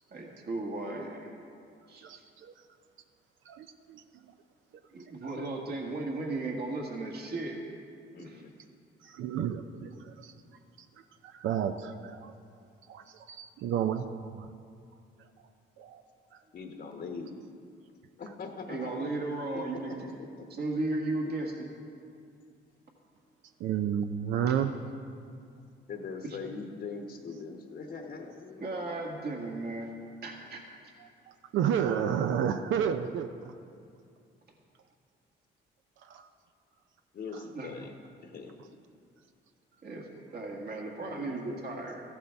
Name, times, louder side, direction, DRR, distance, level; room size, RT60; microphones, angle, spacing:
voice 1, 0.1-1.3 1.9-2.2 4.9-7.6 8.2-8.4 18.7-20.1 20.6-21.5 28.6-29.9 30.2-30.6 37.5-37.7 39.8-42.0, right 2 dB, 55° right, 0 dB, 1.7 m, -35 dB
voice 2, 2.0-2.7 3.4-4.3 5.0-5.4 9.0-10.4 10.8-12.3 12.8-14.0 14.4-14.5 15.2-15.5 15.8-16.0 16.3-16.4 23.6-24.8 31.0-33.6 36.0-36.3 37.3-37.4, right 8 dB, 80° right, 8 dB, 0.5 m, -32 dB
voice 3, 8.1-8.5 16.5-17.4 18.2-19.2 19.7-20.6 21.2-21.4 25.9-28.7 37.1-38.0 38.2-38.7 41.0-41.6, left 4 dB, 55° left, 3 dB, 1.0 m, -42 dB
14.0 x 11.5 x 3.4 m, 2.4 s
cardioid pair, 90°, 20 cm